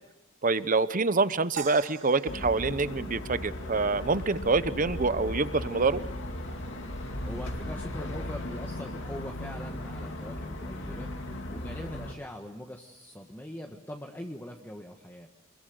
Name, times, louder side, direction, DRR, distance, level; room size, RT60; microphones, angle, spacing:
voice 1, 0.4-6.0, right 3 dB, 40° right, 14 dB, 0.9 m, -26 dB
sound 1, 1.6-3.9, right 7 dB, 65° right, 2.4 m, -43 dB
sound 2, 2.3-12.1, left 1 dB, 60° left, 2.7 m, -37 dB
voice 2, 7.2-11.1 11.5-15.3, left 1 dB, 10° left, 2 dB, 1.5 m, -42 dB
28.0 x 21.5 x 7.9 m, 0.93 s
head